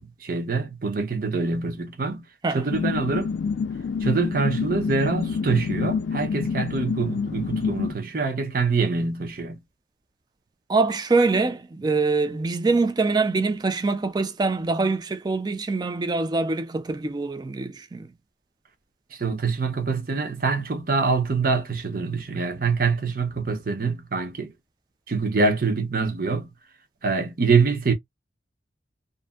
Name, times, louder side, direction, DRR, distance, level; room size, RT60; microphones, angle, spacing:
voice 1, 0.0-2.3 2.5-3.3 4.0-9.6 19.1-24.5 25.1-26.5 27.0-27.9, right 4 dB, 50° right, 0.7 m, -25 dB
sound 1, 2.7-7.9, left 5 dB, 75° left, 0.3 m, -27 dB
voice 2, 10.7-18.1, right 3 dB, 20° right, 0.3 m, -24 dB
2.6 x 2.5 x 2.3 m
head